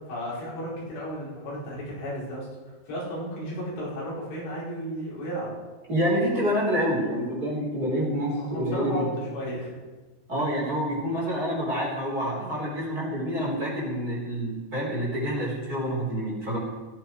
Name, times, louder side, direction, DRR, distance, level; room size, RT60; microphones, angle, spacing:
voice 1, 0.1-2.5 2.9-5.5 8.4-9.7 10.3-10.4 12.1-12.5, equal, 80° left, -7 dB, 7.5 m, -34 dB
voice 2, 5.9-9.1 10.3-16.6, equal, 20° right, -4 dB, 4.4 m, -27 dB
17.0 x 15.0 x 4.7 m, 1.3 s
omnidirectional pair, 4.9 m